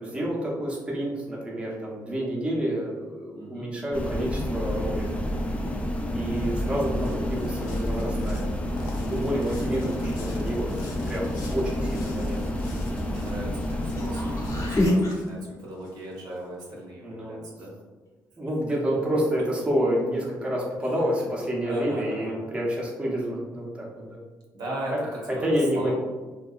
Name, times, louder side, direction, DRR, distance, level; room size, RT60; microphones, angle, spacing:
voice 1, 0.0-5.1 6.1-8.4 9.1-12.5 17.0-17.4 18.4-24.2 24.9-25.0 25.4-25.9, equal, 15° right, -4 dB, 0.6 m, -29 dB
voice 2, 3.4-3.7 6.4-6.7 10.8-10.9 13.0-17.7 21.2-21.3 21.6-22.4 24.5-25.4 25.7-25.9, right 1 dB, 75° right, -3 dB, 0.7 m, -38 dB
sound 1, 3.9-14.9, left 1 dB, 20° left, 0.3 m, -29 dB
sound 2, 6.3-16.7, left 2 dB, 90° left, 0.4 m, -46 dB
sound 3, 13.7-15.1 19.9-20.0, left 1 dB, 50° left, 0.7 m, -40 dB
2.7 x 2.2 x 2.3 m, 1.3 s
cardioid pair, 75°, 7 cm